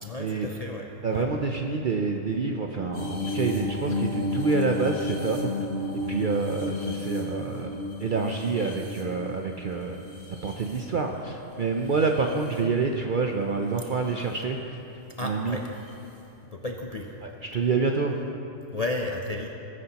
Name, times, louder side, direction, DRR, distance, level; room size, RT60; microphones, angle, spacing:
voice 1, 0.0-0.9 1.1-1.3 6.0-6.3 15.2-15.8 16.5-17.1 18.7-19.5, left 2 dB, 45° left, 1 dB, 0.5 m, -33 dB
voice 2, 1.0-5.7 5.9-10.0 10.3-14.8 15.2-15.6 17.2-18.2, right 4 dB, 55° right, 2 dB, 0.5 m, -27 dB
sound 1, 2.9-11.3 11.8-12.6 13.8-14.1 15.9-16.0, left 2 dB, 75° left, 2.5 m, -33 dB
20.0 x 9.6 x 2.9 m, 3.0 s
omnidirectional pair, 1.4 m